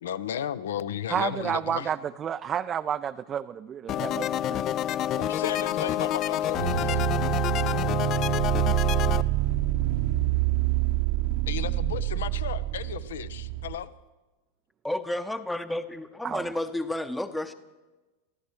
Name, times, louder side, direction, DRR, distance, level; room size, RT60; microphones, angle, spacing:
voice 1, 0.0-1.9 5.2-7.0 11.5-13.9, left 9 dB, 70° left, 16 dB, 0.7 m, -34 dB
voice 2, 1.1-4.7 16.2-16.5, right 8 dB, 30° right, 10 dB, 0.4 m, -31 dB
sound 1, 3.9-9.2, left 11 dB, 40° left, 0.4 m, -28 dB
sound 2, 6.6-13.8, right 15 dB, 60° right, 1.0 m, -26 dB
voice 3, 14.8-17.5, left 1 dB, 5° left, 10 dB, 0.8 m, -31 dB
29.0 x 14.5 x 3.3 m, 1.2 s
hypercardioid pair, 95°, 0 cm